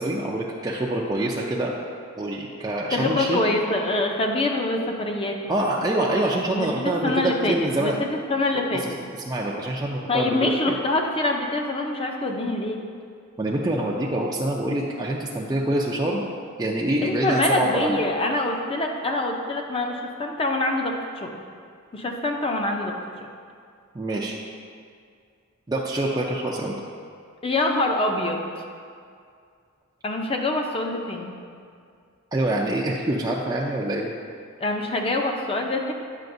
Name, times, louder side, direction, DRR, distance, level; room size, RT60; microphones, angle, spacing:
voice 1, 0.0-1.8 2.2-3.4 5.5-8.0 9.3-10.7 13.4-16.2 16.6-18.0 23.9-24.4 25.7-26.7 32.3-34.1, right 1 dB, 20° right, -4 dB, 0.4 m, -25 dB
voice 2, 2.9-5.6 6.5-9.0 10.1-12.8 17.0-21.4 21.9-23.3 27.4-28.4 30.0-31.3 34.6-35.9, left 2 dB, 25° left, 2 dB, 0.6 m, -25 dB
9.1 x 5.7 x 2.6 m, 2.2 s
head